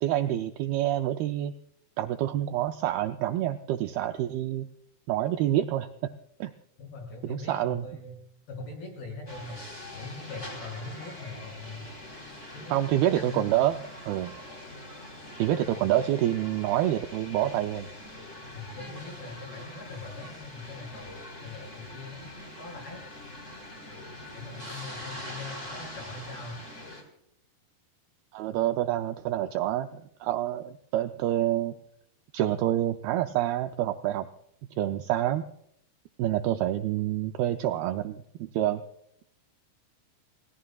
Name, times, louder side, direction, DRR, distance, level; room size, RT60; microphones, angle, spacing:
voice 1, 0.0-1.5 2.0-4.7 5.1-5.9 6.4-6.5 7.2-7.9 12.7-14.3 15.4-17.9 28.3-31.7 32.3-34.3 34.8-35.5 36.2-38.8, right 12 dB, 80° right, 6 dB, 2.2 m, -27 dB
voice 2, 6.8-8.2 8.5-9.6 9.9-11.9 12.5-12.9 13.1-13.4 15.7-15.9 18.5-22.3 22.6-23.0 24.3-26.6, left 3 dB, 60° left, 2 dB, 8.0 m, -41 dB
sound 1, 9.3-27.0, left 1 dB, 15° left, 3.8 m, -43 dB
29.5 x 18.0 x 2.4 m, 0.74 s
omnidirectional pair, 5.1 m